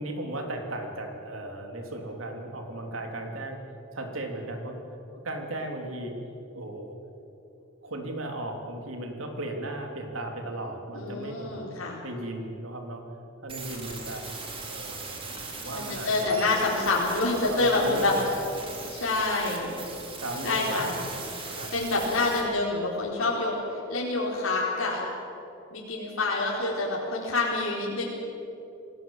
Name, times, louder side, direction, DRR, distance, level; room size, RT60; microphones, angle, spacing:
voice 1, 0.0-3.6 3.9-4.8 5.1-6.1 6.5-7.0 7.8-11.7 12.0-13.0 13.4-14.3 14.6-15.1 15.5-16.4 17.5-18.3 18.6-18.7 20.1-21.0 21.5-21.7, right 1 dB, 80° right, 3 dB, 3.4 m, -36 dB
voice 2, 10.9-12.0 15.7-18.1 18.9-19.7 20.4-21.0 21.7-25.0 25.7-28.0, left 2 dB, 85° left, -4 dB, 4.3 m, -27 dB
sound 1, 13.5-22.4, right 3 dB, 25° right, 3.5 m, -39 dB
28.0 x 18.0 x 7.4 m, 2.9 s
head